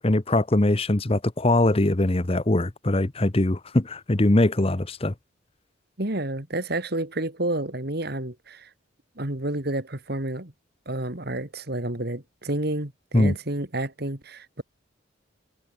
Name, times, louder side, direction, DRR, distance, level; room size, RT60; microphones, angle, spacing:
voice 1, 0.0-5.1 13.1-13.3, left 1 dB, 30° left, 1.0 m, -22 dB
voice 2, 6.0-8.7 9.2-10.5 10.9-14.6, right 1 dB, 50° right, 2.6 m, -30 dB
head